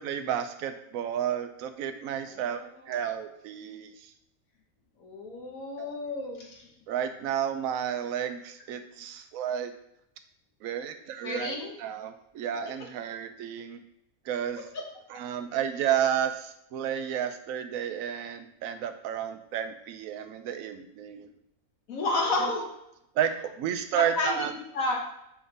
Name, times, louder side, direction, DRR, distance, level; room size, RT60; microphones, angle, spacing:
voice 1, 0.0-2.6 2.9-4.1 5.8-6.0 6.9-9.7 10.6-13.8 14.3-14.7 15.1-21.3 23.1-24.5, right 9 dB, 75° right, 9 dB, 1.0 m, -31 dB
voice 2, 5.0-6.6 11.2-11.7 21.9-22.7 23.9-25.0, left 2 dB, 75° left, 0 dB, 1.5 m, -30 dB
6.8 x 3.7 x 3.9 m, 0.80 s
omnidirectional pair, 1.5 m